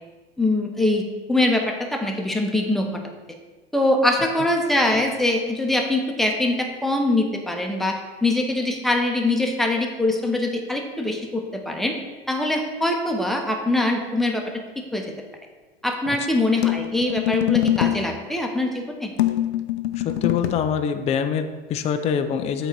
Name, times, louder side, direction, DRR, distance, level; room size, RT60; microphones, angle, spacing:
voice 1, 0.4-2.9 3.7-11.9 12.3-15.0 15.8-19.1, left 2 dB, ahead, 2 dB, 0.9 m, -23 dB
sound 1, 16.6-18.1 19.2-20.7, left 12 dB, 75° left, 0.6 m, -23 dB
voice 2, 20.0-22.7, left 7 dB, 20° left, 8 dB, 0.4 m, -25 dB
8.0 x 4.0 x 4.6 m, 1.3 s
hypercardioid pair, 90°, 32 cm